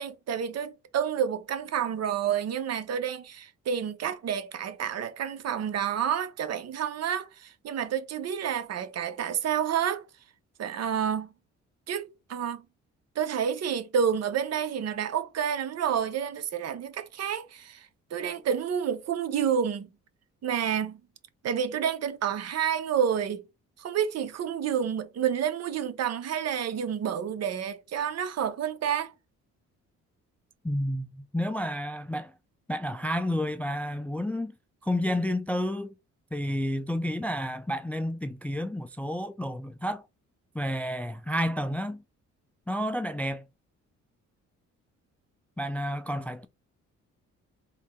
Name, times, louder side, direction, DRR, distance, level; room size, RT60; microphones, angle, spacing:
voice 1, 0.0-10.0 10.6-11.3 11.9-12.6 13.2-17.9 18.1-19.9 20.4-21.0 21.4-23.4 23.8-29.1, right 8 dB, 55° right, 0.8 m, -29 dB
voice 2, 30.6-32.3 32.7-34.5 34.8-35.9 36.3-40.0 40.5-42.0 42.7-43.5 45.6-46.5, equal, 5° left, 0.3 m, -30 dB
3.6 x 2.7 x 3.5 m
cardioid pair, 90°, 30 cm